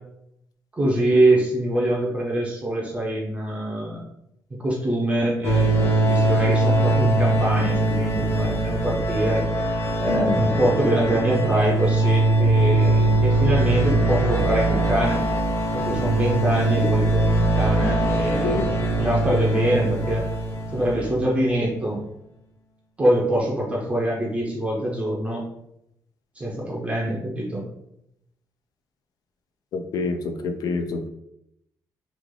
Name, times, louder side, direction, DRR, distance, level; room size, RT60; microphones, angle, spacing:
voice 1, 0.7-4.0 4.6-9.5 10.0-15.2 15.7-20.3 20.7-22.0 23.0-25.4 26.4-27.6, right 1 dB, 15° right, -3 dB, 0.6 m, -24 dB
sound 1, 5.4-21.4, right 2 dB, 35° left, 0.8 m, -21 dB
voice 2, 10.1-10.4 18.4-18.7 29.7-31.1, left 3 dB, 65° left, 6 dB, 0.4 m, -27 dB
3.1 x 2.4 x 3.7 m, 0.79 s
cardioid pair, 180°, 7 cm